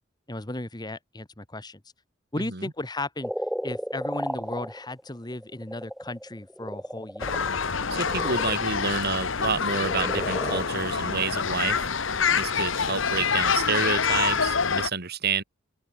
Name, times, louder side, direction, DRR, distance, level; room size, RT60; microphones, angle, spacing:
voice 1, 0.3-1.8 2.3-3.3 3.6-7.3, left 2 dB, 20° left, 1.6 m, -35 dB
voice 2, 2.4-2.7 7.9-11.9 12.3-15.4, right 5 dB, 55° right, 2.5 m, -29 dB
sound 1, 3.2-8.6 9.6-10.9, equal, ahead, 0.6 m, -34 dB
sound 2, 7.2-14.9, left 6 dB, 70° left, 1.4 m, -26 dB
open air
head